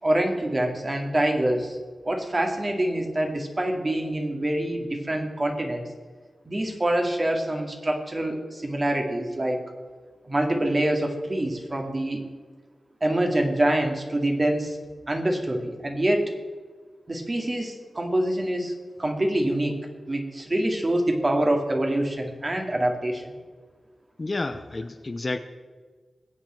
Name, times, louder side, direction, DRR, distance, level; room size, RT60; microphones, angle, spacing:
voice 1, 0.0-1.8 2.0-5.8 6.5-9.6 10.3-12.2 13.0-14.8 15.1-16.3 17.1-18.7 19.0-19.8 20.1-23.2, right 1 dB, 30° right, 3 dB, 2.2 m, -25 dB
voice 2, 24.2-25.4, left 2 dB, 35° left, 9 dB, 0.7 m, -30 dB
21.0 x 8.5 x 4.5 m, 1.5 s
wide cardioid pair, 80°, 0 cm